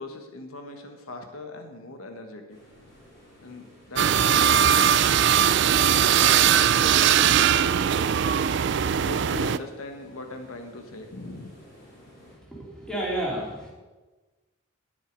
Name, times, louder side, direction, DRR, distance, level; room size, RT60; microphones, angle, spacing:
voice 1, 0.0-2.6 3.4-4.7 5.8-7.6 9.0-11.5, left 2 dB, 85° left, 5 dB, 1.4 m, -40 dB
sound 1, 2.5-12.3, equal, 45° left, 4.2 m, -53 dB
sound 2, 4.0-9.6, right 9 dB, 55° right, 0.3 m, -20 dB
voice 2, 12.3-13.7, right 1 dB, 5° left, -4 dB, 2.9 m, -31 dB
10.5 x 10.0 x 5.3 m, 1.2 s
head